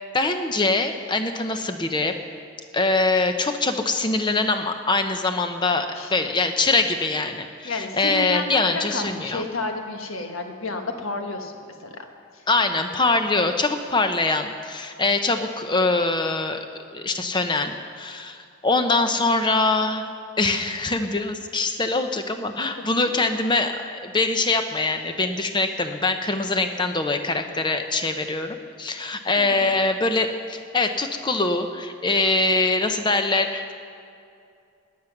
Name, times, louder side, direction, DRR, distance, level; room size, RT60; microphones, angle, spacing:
voice 1, 0.1-2.2 2.7-9.4 12.5-16.6 16.9-18.4 18.6-20.0 20.4-33.7, left 3 dB, 20° left, 7 dB, 0.8 m, -23 dB
voice 2, 5.9-6.3 7.6-11.5 11.8-11.9 12.3-12.4 22.8-23.1 29.3-29.7, left 2 dB, 80° left, 4 dB, 1.4 m, -31 dB
17.5 x 10.0 x 6.0 m, 2.5 s
head